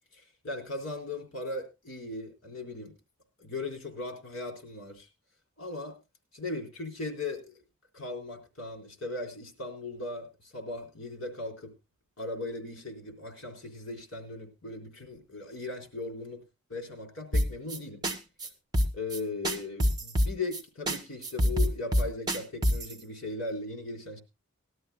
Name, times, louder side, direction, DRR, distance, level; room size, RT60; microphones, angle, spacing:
voice 1, 0.1-2.9 3.4-5.1 5.6-6.0 6.3-7.6 7.9-11.7 12.2-16.4 16.7-18.0 18.9-24.2, left 2 dB, 65° left, 3 dB, 4.0 m, -38 dB
sound 1, 17.3-17.8 18.0-18.2 18.4-18.5 18.7-19.2 19.4-20.6 20.9-21.0 21.2-22.9, equal, 20° right, 1.6 m, -25 dB
19.5 x 12.5 x 2.2 m, 0.25 s
head